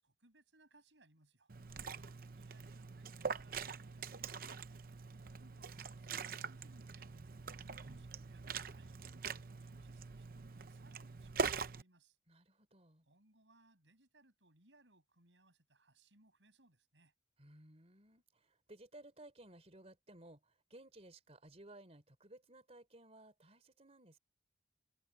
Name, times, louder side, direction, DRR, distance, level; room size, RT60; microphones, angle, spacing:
voice 1, 0.0-1.5 2.3-4.8 5.2-7.1 7.5-12.2 13.0-17.1, right 2 dB, 85° right, 7.0 m, -68 dB
Liquid, 1.5-11.8, right 5 dB, 55° right, 0.8 m, -44 dB
voice 2, 1.7-2.1 12.3-13.1 17.4-24.2, right 1 dB, 35° right, 3.7 m, -58 dB
head